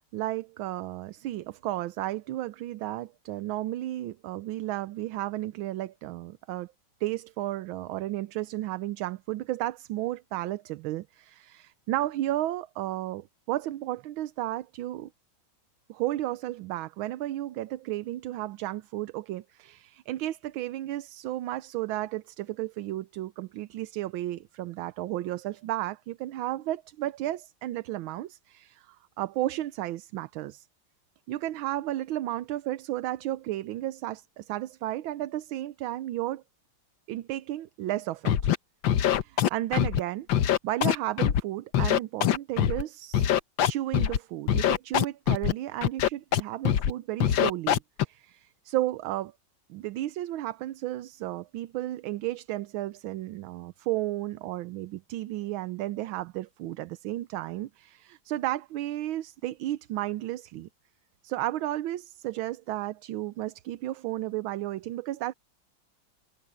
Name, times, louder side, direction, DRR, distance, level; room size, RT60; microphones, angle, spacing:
voice 1, 0.1-6.7 7.0-15.1 15.9-30.7 31.3-36.4 37.1-38.5 39.0-40.3 40.6-43.3 43.7-49.3 49.7-60.7 61.2-65.3, right 15 dB, 80° right, 1.5 m, -33 dB
Scratching (performance technique), 38.2-38.6 38.8-40.0 40.3-41.4 41.7-42.8 43.1-44.2 44.5-45.5 45.8-46.4 46.6-46.9 47.2-48.0, left 10 dB, 70° left, 1.6 m, -23 dB
omnidirectional pair, 2.2 m